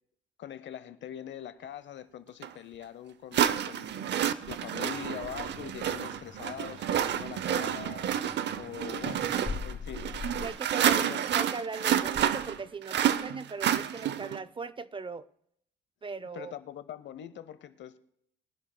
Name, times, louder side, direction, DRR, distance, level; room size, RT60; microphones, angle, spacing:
voice 1, 0.4-4.0 4.5-8.0 8.6-9.3 9.6-10.1 10.8-11.2 16.3-18.0, left 10 dB, 65° left, 0.8 m, -42 dB
sound 1, 2.4-2.5 3.3-14.4, right 10 dB, 60° right, 0.6 m, -29 dB
sound 2, 4.8-10.5, left 5 dB, 40° left, 4.3 m, -43 dB
voice 2, 10.4-11.0 11.3-15.3 16.0-16.5, right 4 dB, 25° right, 0.4 m, -38 dB
21.5 x 11.0 x 2.2 m
cardioid pair, 90°, 20 cm